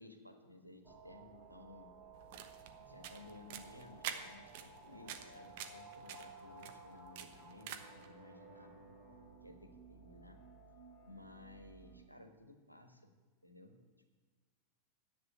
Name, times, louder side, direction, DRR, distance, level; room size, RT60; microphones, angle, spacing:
voice 1, 0.0-1.9 2.7-8.7 9.4-10.4 11.0-13.0 13.4-13.8, left 2 dB, 90° left, 5 dB, 1.4 m, -57 dB
sound 1, 0.8-12.0, right 3 dB, 10° right, 3.8 m, -57 dB
sound 2, 2.1-8.1, right 9 dB, 50° right, 1.1 m, -48 dB
10.5 x 8.2 x 8.6 m, 1.4 s
figure-of-eight pair, 90°, 0 cm